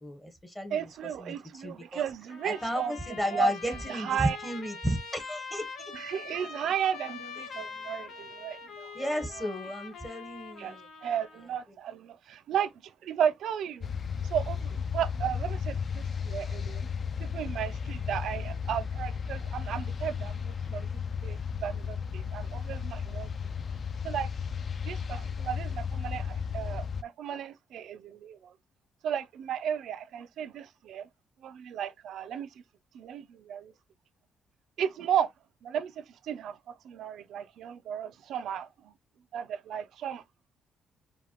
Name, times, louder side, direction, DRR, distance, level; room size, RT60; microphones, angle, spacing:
voice 1, 0.0-0.8 1.2-2.0 2.4-5.9 8.9-10.9, equal, 10° left, 1.1 m, -33 dB
voice 2, 0.7-2.9 3.3-4.4 5.9-8.9 10.6-13.9 14.3-16.9 17.2-20.9 21.2-23.3 24.0-24.3 24.8-28.5 29.0-31.1 31.4-32.5 32.9-33.7 34.8-35.3 35.6-36.6 36.8-38.9 39.3-40.2, right 9 dB, 75° right, 0.4 m, -34 dB
Trumpet, 2.3-11.5, left 5 dB, 75° left, 1.1 m, -43 dB
sound 1, 13.8-27.0, left 6 dB, 45° left, 0.3 m, -34 dB
5.0 x 2.2 x 2.9 m
cardioid pair, 90°, 0 cm